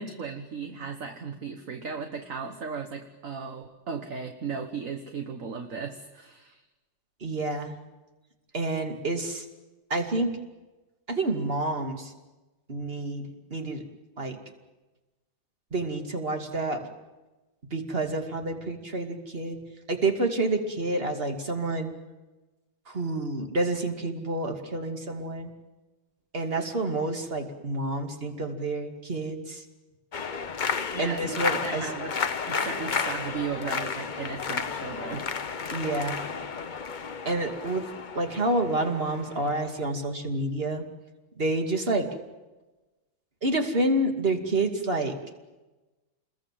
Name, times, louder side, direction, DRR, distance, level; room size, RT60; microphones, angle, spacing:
voice 1, 0.0-6.6 30.9-32.2 32.4-35.7, right 5 dB, 45° right, 6 dB, 1.7 m, -36 dB
voice 2, 7.2-7.8 8.5-9.5 9.9-10.4 11.1-12.1 12.7-13.8 14.2-14.4 15.7-16.9 17.7-19.6 19.9-21.9 22.9-25.5 26.3-29.6 31.0-31.9 35.7-36.2 37.2-37.9 38.1-40.8 41.4-42.1 43.4-45.2, right 2 dB, 30° right, 5 dB, 2.6 m, -28 dB
sound 1, 30.1-39.8, left 5 dB, 45° left, 0.6 m, -32 dB
29.0 x 21.5 x 7.6 m, 1.1 s
omnidirectional pair, 2.1 m